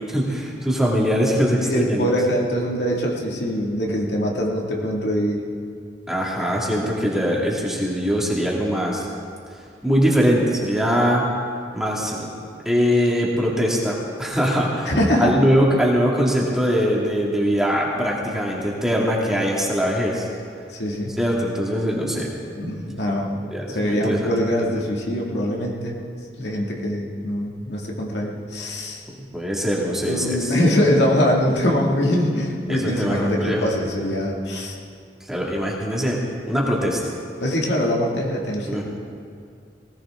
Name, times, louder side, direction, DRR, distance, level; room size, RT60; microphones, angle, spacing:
voice 1, 0.1-2.2 6.1-9.1 9.8-11.3 11.7-12.2 12.7-14.9 15.2-20.3 21.2-22.3 23.5-24.7 29.2-30.6 32.7-33.7 35.2-36.2 36.5-37.1 38.7-38.8, equal, 5° right, -4 dB, 2.3 m, -22 dB
voice 2, 1.6-5.4 14.9-15.3 18.1-18.3 20.7-21.1 22.6-23.3 23.7-26.0 26.4-29.0 30.1-34.8 37.4-38.8, equal, 75° left, -2 dB, 2.3 m, -23 dB
19.0 x 17.0 x 3.8 m, 2.3 s
head